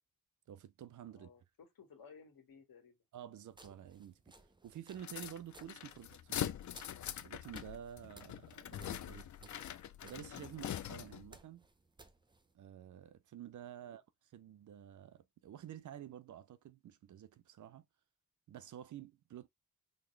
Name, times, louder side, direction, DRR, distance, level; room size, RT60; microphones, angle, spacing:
voice 1, 0.5-1.3 3.1-4.2 4.6-6.5 7.2-9.5 10.0-11.7 12.5-14.0 14.3-17.9 18.5-19.5, right 10 dB, 55° right, 0.5 m, -50 dB
voice 2, 1.1-3.0 13.8-14.0, left 6 dB, 70° left, 1.7 m, -59 dB
sound 1, 3.5-12.5, right 2 dB, 15° right, 0.6 m, -62 dB
sound 2, 5.0-11.3, left 10 dB, 50° left, 0.5 m, -43 dB
3.9 x 2.0 x 3.2 m
cardioid pair, 70°, 37 cm